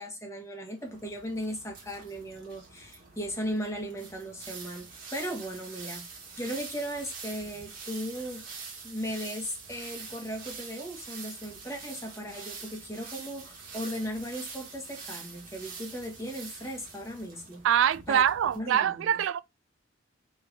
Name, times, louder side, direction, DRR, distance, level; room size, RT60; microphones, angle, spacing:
voice 1, 0.0-17.6 18.1-18.2 18.5-19.2, equal, 15° left, 1.6 m, -37 dB
sound 1, 0.8-18.6, right 5 dB, 50° right, 1.8 m, -45 dB
voice 2, 17.6-19.4, right 9 dB, 85° right, 0.3 m, -24 dB
4.4 x 3.4 x 3.5 m
head